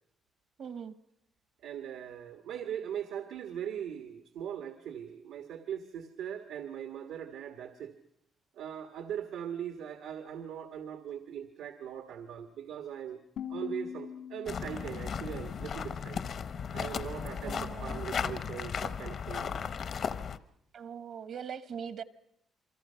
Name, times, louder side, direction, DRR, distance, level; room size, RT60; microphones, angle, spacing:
voice 1, 0.6-0.9 17.4-18.1 20.7-22.0, right 7 dB, 60° right, 13 dB, 1.0 m, -41 dB
voice 2, 1.6-7.9 8.5-13.2 13.5-16.2 16.7-19.7, right 9 dB, 90° right, 7 dB, 1.4 m, -40 dB
sound 1, 13.4-16.4, left 8 dB, 75° left, 1.8 m, -44 dB
sound 2, 14.5-20.4, left 6 dB, 50° left, 0.8 m, -36 dB
28.5 x 23.5 x 5.6 m, 0.78 s
cardioid pair, 145°, 0 cm